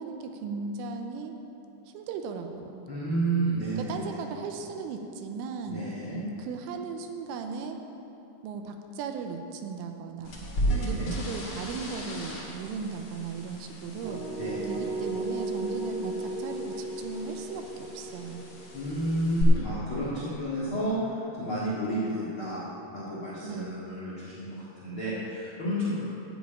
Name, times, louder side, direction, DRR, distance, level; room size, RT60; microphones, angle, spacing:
voice 1, 0.0-1.4 1.9-2.8 3.9-5.8 6.4-7.8 8.4-10.5 10.8-14.2 14.7-18.5 23.4-23.7, right 5 dB, 85° right, 5 dB, 3.1 m, -37 dB
voice 2, 2.9-4.2 5.7-6.2 10.6-11.1 14.4-14.7 18.7-22.6 22.9-26.1, right 1 dB, 80° left, -9 dB, 1.1 m, -31 dB
sound 1, 10.2-19.4, equal, 50° left, 1.5 m, -37 dB
sound 2, 14.0-19.9, right 2 dB, 50° right, 2.6 m, -35 dB
12.5 x 5.2 x 8.9 m, 3.0 s
omnidirectional pair, 5.9 m